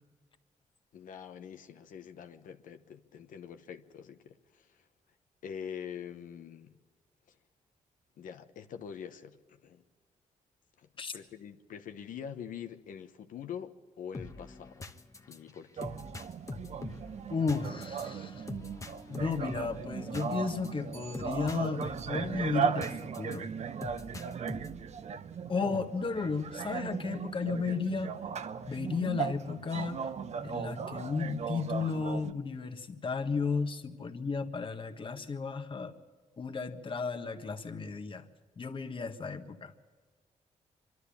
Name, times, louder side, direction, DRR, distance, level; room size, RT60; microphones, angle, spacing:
voice 1, 0.9-4.9 5.4-6.8 7.3-7.4 8.2-9.8 10.8-14.9 15.3-16.0, left 8 dB, 80° left, 1.1 m, -45 dB
sound 1, 14.1-23.4 23.8-24.9, left 2 dB, 25° left, 1.2 m, -44 dB
sound 2, 15.8-32.3, right 7 dB, 55° right, 0.8 m, -37 dB
voice 2, 17.3-18.5 19.1-23.5 25.5-28.1 28.7-30.1 30.4-35.9 36.4-38.3 38.6-39.7, left 4 dB, 40° left, 1.5 m, -34 dB
25.0 x 12.5 x 8.6 m
cardioid pair, 95°, 14 cm